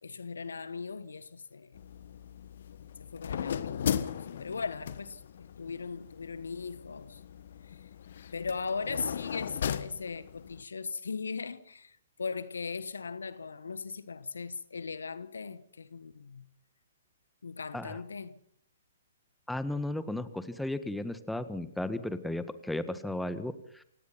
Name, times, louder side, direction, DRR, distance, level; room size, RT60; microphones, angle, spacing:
voice 1, 0.0-1.8 3.0-7.2 7.7-7.8 8.3-16.5 17.4-18.4, left 5 dB, 80° left, 1.3 m, -39 dB
sound 1, 1.7-10.6, left 8 dB, 60° left, 1.3 m, -37 dB
voice 2, 19.5-23.8, left 1 dB, 5° left, 1.6 m, -35 dB
29.0 x 17.5 x 5.8 m
hypercardioid pair, 125°, 0 cm